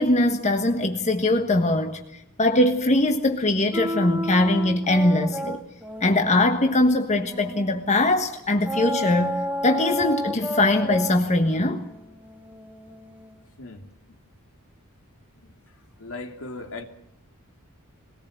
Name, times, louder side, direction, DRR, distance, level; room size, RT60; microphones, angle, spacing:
voice 1, 0.0-5.6 6.0-11.8, left 1 dB, 30° left, 1.4 m, -21 dB
sound 1, 3.7-7.9 8.6-13.4, equal, 5° right, 1.9 m, -32 dB
voice 2, 16.0-16.8, left 3 dB, 65° left, 2.6 m, -37 dB
22.0 x 18.5 x 8.0 m
head